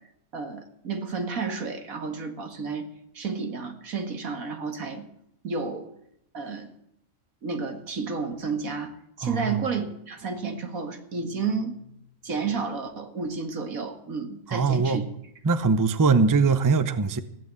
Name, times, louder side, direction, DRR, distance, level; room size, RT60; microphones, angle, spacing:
voice 1, 0.3-2.8 3.1-5.1 5.4-5.9 6.3-6.7 7.4-8.9 9.2-12.0 12.2-15.0, right 4 dB, 80° right, 2.3 m, -31 dB
voice 2, 9.2-9.6 14.5-15.0 15.4-17.2, right 4 dB, 20° right, 0.5 m, -22 dB
15.5 x 9.1 x 8.3 m
omnidirectional pair, 1.4 m